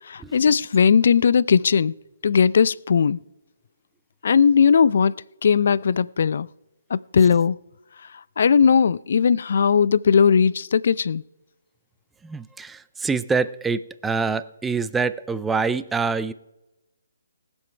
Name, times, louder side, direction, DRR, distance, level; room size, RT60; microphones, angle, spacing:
voice 1, 0.1-2.0 2.2-3.2 4.2-5.2 5.4-6.5 6.9-7.6 8.4-11.2, left 6 dB, 60° left, 0.4 m, -18 dB
voice 2, 12.2-16.3, right 4 dB, 5° right, 0.4 m, -26 dB
19.5 x 7.1 x 4.5 m
figure-of-eight pair, 145°, 0 cm